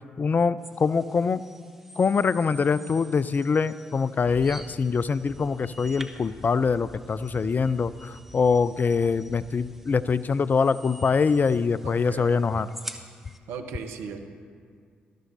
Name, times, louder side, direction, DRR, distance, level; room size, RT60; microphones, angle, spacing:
voice 1, 0.2-1.4 2.0-12.7, left 5 dB, 40° left, 16 dB, 0.4 m, -24 dB
sound 1, 0.6-13.4, right 1 dB, 5° right, 1.3 m, -47 dB
sound 2, 4.2-10.5, right 1 dB, 40° right, 1.9 m, -49 dB
voice 2, 11.8-12.4 13.5-14.2, right 6 dB, 75° right, 6 dB, 0.9 m, -37 dB
19.0 x 12.5 x 2.7 m, 2.1 s
hypercardioid pair, 40°, 4 cm